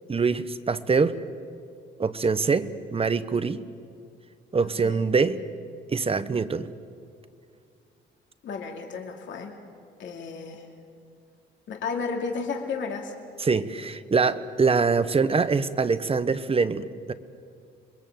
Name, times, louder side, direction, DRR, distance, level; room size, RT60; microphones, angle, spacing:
voice 1, 0.1-1.2 2.0-3.6 4.5-5.4 5.9-6.7 13.4-17.1, right 4 dB, 30° right, 13 dB, 1.0 m, -24 dB
voice 2, 4.6-5.1 8.4-9.6 10.0-10.6 11.7-13.1, left 5 dB, 70° left, 1 dB, 2.6 m, -33 dB
26.5 x 21.5 x 7.7 m, 2.3 s
cardioid pair, 90°, 20 cm